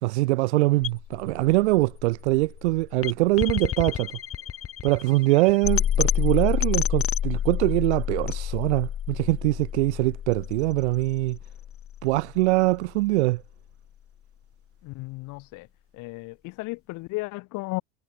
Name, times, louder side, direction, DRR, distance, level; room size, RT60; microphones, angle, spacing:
voice 1, 0.0-4.1 4.8-11.4 12.0-13.4, right 21 dB, 75° right, 5.1 m, -23 dB
sound 1, 0.8-12.8, left 10 dB, 40° left, 6.9 m, -29 dB
voice 2, 14.8-15.7 16.0-17.8, left 23 dB, 60° left, 4.8 m, -34 dB
hypercardioid pair, 85°, 34 cm